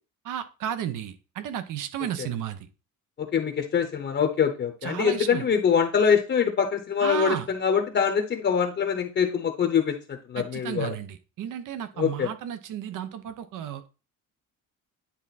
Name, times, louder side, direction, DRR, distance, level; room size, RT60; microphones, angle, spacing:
voice 1, 0.2-2.7 4.8-5.5 7.0-7.5 10.4-13.9, right 10 dB, 70° right, 11 dB, 0.9 m, -33 dB
voice 2, 3.2-10.9 12.0-12.3, left 7 dB, 35° left, 5 dB, 0.8 m, -24 dB
10.0 x 3.6 x 4.1 m, 0.33 s
cardioid pair, 145°, 33 cm